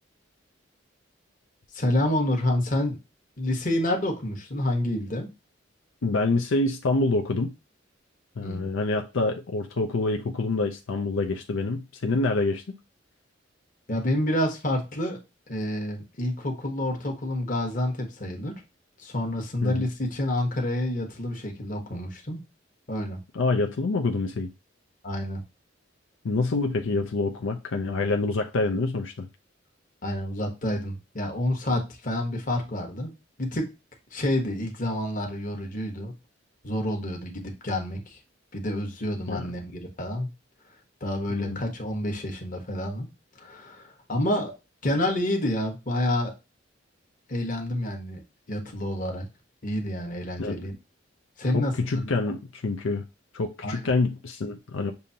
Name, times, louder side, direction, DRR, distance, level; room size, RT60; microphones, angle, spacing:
voice 1, 1.7-3.0 3.4-5.3 8.4-8.7 13.9-15.2 15.5-18.5 19.0-22.4 22.9-23.2 25.0-25.4 30.0-33.1 33.4-33.7 34.1-36.1 36.6-38.1 38.5-40.3 41.0-43.1 43.4-44.5 44.8-46.3 47.3-48.2 48.5-49.3 49.6-50.7 51.4-52.1 53.6-53.8, left 1 dB, 45° left, 1.2 m, -28 dB
voice 2, 6.0-7.5 8.4-12.8 19.6-19.9 23.3-24.5 26.2-29.3 39.3-39.5 41.3-41.6 50.4-50.6 51.5-53.0 53.3-54.9, left 3 dB, 85° left, 0.5 m, -26 dB
6.9 x 2.6 x 2.7 m
head